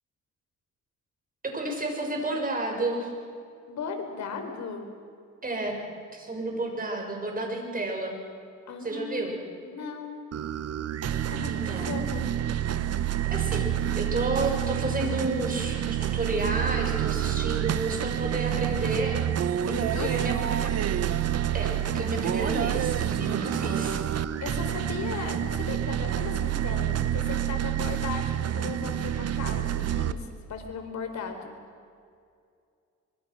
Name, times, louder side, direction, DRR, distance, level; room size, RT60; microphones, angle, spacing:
voice 1, 1.4-3.1 5.4-5.8 6.1-8.2 8.8-9.3 11.5-12.0 13.3-19.2 19.7-20.7 21.5-24.0, right 2 dB, 30° right, 2 dB, 6.7 m, -31 dB
voice 2, 3.7-4.9 8.7-10.2 11.3-12.2 19.7-20.3 24.4-31.5, left 5 dB, 65° left, 5 dB, 4.2 m, -37 dB
sound 1, 10.3-30.1, right 10 dB, 55° right, 1.0 m, -28 dB
24.5 x 24.5 x 6.3 m, 2.3 s
cardioid pair, 90°, 30 cm